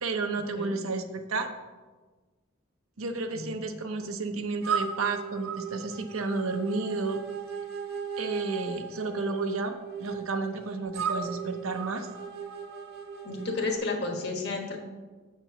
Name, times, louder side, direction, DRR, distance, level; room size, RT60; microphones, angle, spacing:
voice 1, 0.0-1.5 3.0-7.2 8.2-12.1, right 3 dB, 85° right, 6 dB, 0.8 m, -31 dB
voice 2, 3.3-3.7 13.2-14.8, left 3 dB, 55° left, 2 dB, 1.4 m, -32 dB
sound 1, 4.6-13.8, right 6 dB, 50° right, 0.9 m, -36 dB
7.2 x 4.5 x 6.8 m, 1.3 s
head